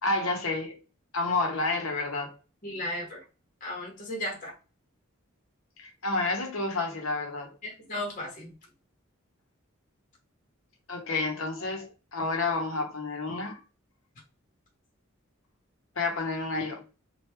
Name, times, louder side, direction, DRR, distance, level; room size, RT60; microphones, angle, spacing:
voice 1, 0.0-0.8 1.1-2.4 5.8-7.6 10.9-13.6 16.0-16.8, left 3 dB, 90° left, 1.1 m, -30 dB
voice 2, 2.6-3.2 3.6-4.5 7.6-8.5, left 1 dB, 40° left, 1.3 m, -35 dB
3.1 x 2.6 x 3.3 m
head